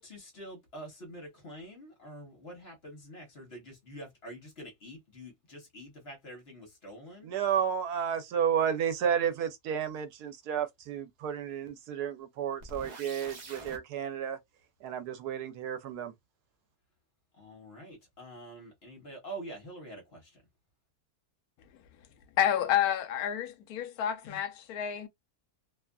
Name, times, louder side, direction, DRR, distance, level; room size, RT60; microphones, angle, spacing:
voice 1, 0.0-7.3 17.4-20.4, right 1 dB, 45° left, 1.1 m, -46 dB
voice 2, 7.2-14.4 14.8-16.1, right 8 dB, 80° right, 1.1 m, -32 dB
sound 1, 12.6-13.8, right 2 dB, 50° right, 0.5 m, -45 dB
voice 3, 22.4-25.1, left 10 dB, 75° left, 1.1 m, -29 dB
2.8 x 2.4 x 2.2 m
omnidirectional pair, 1.7 m